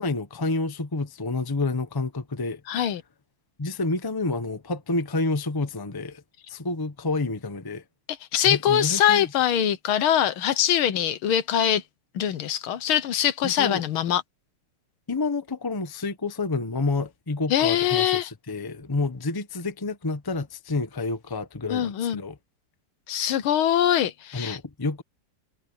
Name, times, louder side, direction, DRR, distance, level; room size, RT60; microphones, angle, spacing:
voice 1, 0.0-2.6 3.6-6.2 6.5-7.8 8.4-9.2 13.4-13.8 15.1-22.4 24.3-25.0, left 3 dB, 15° left, 0.8 m, -29 dB
voice 2, 2.7-3.0 8.3-11.8 12.1-14.2 17.5-18.3 21.7-22.2 23.1-24.6, left 10 dB, 75° left, 1.8 m, -23 dB
omnidirectional pair, 2.4 m